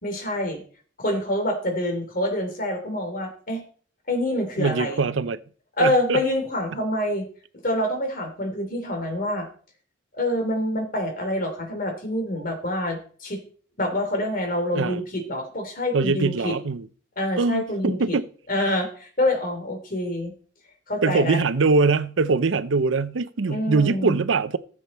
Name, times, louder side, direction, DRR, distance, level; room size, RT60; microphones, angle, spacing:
voice 1, 0.0-0.6 1.0-3.6 4.1-5.0 5.8-7.3 7.6-9.5 10.1-13.4 13.8-16.5 17.2-18.2 18.5-20.3 20.9-21.4 23.5-24.1, left 1 dB, 45° left, 3.0 m, -26 dB
voice 2, 4.6-5.4 5.8-6.2 14.7-15.0 15.9-16.9 17.4-18.3 21.0-24.6, right 4 dB, 85° right, 0.7 m, -22 dB
15.0 x 7.6 x 4.3 m
head